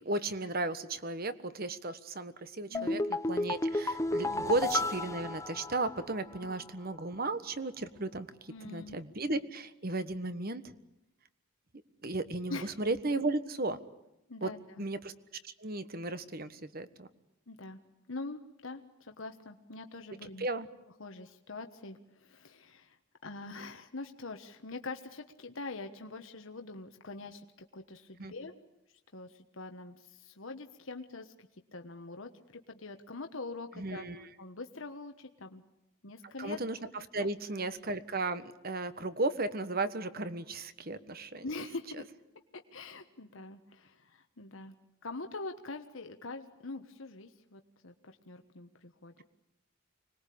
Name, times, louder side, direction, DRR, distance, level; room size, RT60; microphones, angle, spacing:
voice 1, 0.0-3.0 3.3-10.7 12.0-13.8 14.4-14.5 14.8-15.1 15.4-17.1 20.4-20.7 28.2-28.3 33.8-34.3 36.4-36.8 37.1-41.5, right 2 dB, 45° right, 12 dB, 1.4 m, -35 dB
sound 1, 2.7-6.2 6.5-6.6, left 2 dB, 15° left, 0.8 m, -32 dB
voice 2, 8.5-9.0 12.5-12.7 14.3-14.8 17.5-17.8 18.1-20.5 21.0-27.5 27.7-28.5 29.1-32.3 32.7-35.6 36.0-36.6 41.4-42.0 42.5-44.7 45.0-49.1, left 3 dB, 75° left, 5 dB, 1.4 m, -44 dB
25.5 x 20.5 x 8.5 m, 0.92 s
head